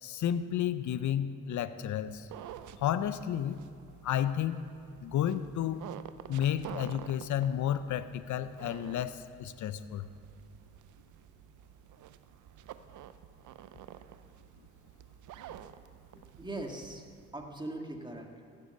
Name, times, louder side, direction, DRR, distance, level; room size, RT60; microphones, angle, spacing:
voice 1, 0.0-2.3 2.8-3.6 4.0-4.6 5.0-5.8 6.3-10.1, left 10 dB, 75° left, 13 dB, 0.6 m, -31 dB
sound 1, 2.1-17.3, right 11 dB, 80° right, 0.6 m, -50 dB
voice 2, 16.1-18.6, right 2 dB, 15° right, 2 dB, 2.0 m, -41 dB
15.0 x 8.3 x 6.6 m, 2.3 s
cardioid pair, 60°, 30 cm